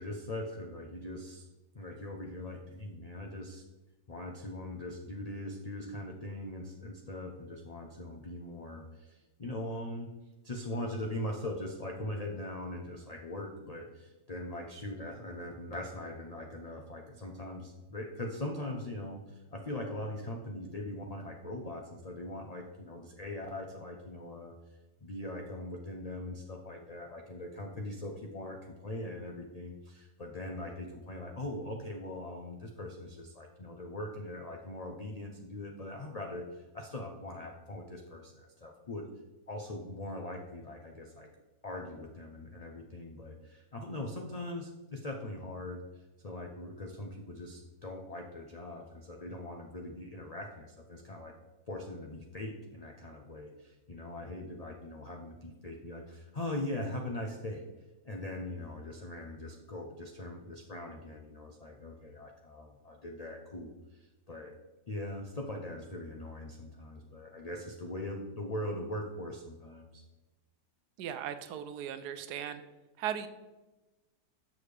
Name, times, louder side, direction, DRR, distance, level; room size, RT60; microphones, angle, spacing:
voice 1, 0.0-1.5 1.7-3.6 4.1-10.1 10.4-24.5 25.0-39.1 39.5-41.3 41.6-45.8 46.2-51.3 51.7-57.6 58.0-64.6 64.9-70.0, left 1 dB, 70° left, 2 dB, 0.3 m, -41 dB
voice 2, 71.0-72.6 73.0-73.3, right 9 dB, 90° right, 10 dB, 1.2 m, -37 dB
7.1 x 6.4 x 3.2 m, 1.1 s
omnidirectional pair, 1.7 m